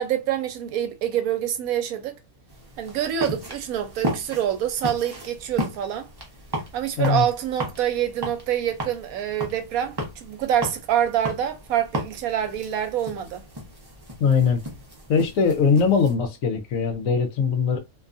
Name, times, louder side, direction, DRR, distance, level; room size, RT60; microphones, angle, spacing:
voice 1, 0.0-2.2 2.8-6.1 6.7-13.4, right 10 dB, 75° right, 1.0 m, -26 dB
sound 1, 2.5-16.1, right 1 dB, 30° right, 0.4 m, -35 dB
voice 2, 14.2-14.6 15.1-17.8, left 6 dB, 70° left, 1.0 m, -21 dB
2.6 x 2.4 x 2.4 m
omnidirectional pair, 1.6 m